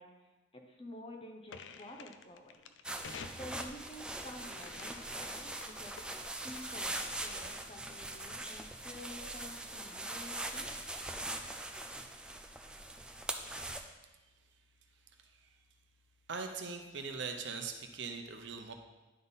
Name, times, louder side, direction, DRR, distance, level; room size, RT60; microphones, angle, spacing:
voice 1, 0.0-2.7 3.4-6.0 6.4-10.7, left 1 dB, 30° left, 2 dB, 0.9 m, -50 dB
sound 1, 1.5-7.8, left 5 dB, 75° left, 0.4 m, -52 dB
sound 2, 2.8-13.8, right 1 dB, 5° right, 0.4 m, -42 dB
voice 2, 16.3-18.7, right 5 dB, 70° right, 4 dB, 0.7 m, -41 dB
10.5 x 3.7 x 4.0 m, 1.1 s
head